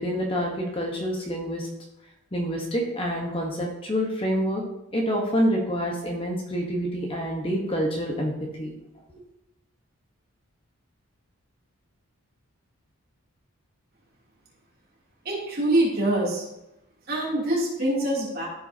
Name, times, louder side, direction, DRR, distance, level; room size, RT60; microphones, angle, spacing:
voice 1, 0.0-1.7 2.3-4.6 4.9-8.3 8.6-8.7, equal, 25° left, 0 dB, 1.0 m, -27 dB
voice 2, 15.2-16.4 17.1-18.5, right 1 dB, 45° right, -5 dB, 2.8 m, -24 dB
14.0 x 5.4 x 2.8 m, 0.87 s
head